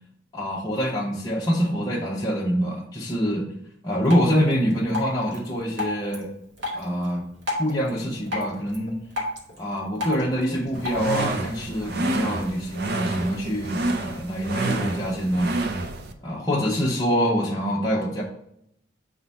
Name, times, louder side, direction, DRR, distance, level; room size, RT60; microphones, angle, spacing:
voice 1, 0.3-3.5 3.8-6.3 6.7-7.2 7.6-9.0 9.6-15.5 16.2-18.2, equal, 20° left, -6 dB, 0.9 m, -25 dB
Drip, 4.0-11.0, left 1 dB, 70° right, 1.8 m, -34 dB
sound 1, 10.7-16.1, right 2 dB, 55° right, 0.7 m, -29 dB
5.2 x 3.8 x 5.5 m, 0.74 s
head